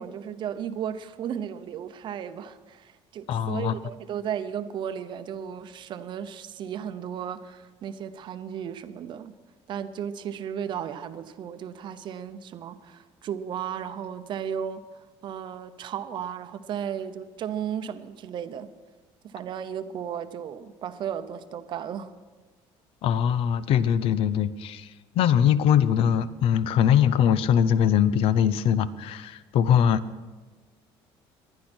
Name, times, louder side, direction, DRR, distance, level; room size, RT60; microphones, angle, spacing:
voice 1, 0.0-9.3 9.7-14.8 15.2-18.7 19.2-22.1, right 8 dB, 45° right, 11 dB, 0.8 m, -34 dB
voice 2, 3.3-3.7 23.0-24.9 25.2-30.0, left 9 dB, 60° left, 15 dB, 0.7 m, -22 dB
19.5 x 12.0 x 4.4 m, 1.3 s
cardioid pair, 145°, 11 cm